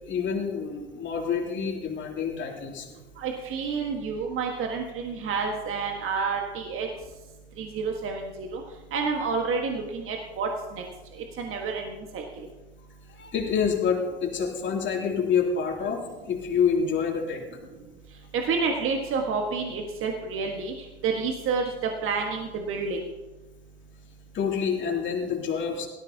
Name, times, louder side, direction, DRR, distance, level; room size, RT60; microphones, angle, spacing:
voice 1, 0.0-2.9 13.1-17.4 24.3-25.9, left 6 dB, 40° left, 0 dB, 3.0 m, -27 dB
voice 2, 3.2-6.9 7.6-8.6 8.9-10.8 11.4-12.2 18.4-20.7 21.0-21.6 22.0-23.1, right 5 dB, 45° right, 2 dB, 1.6 m, -29 dB
17.0 x 13.5 x 2.9 m, 1.2 s
hypercardioid pair, 80°, 31 cm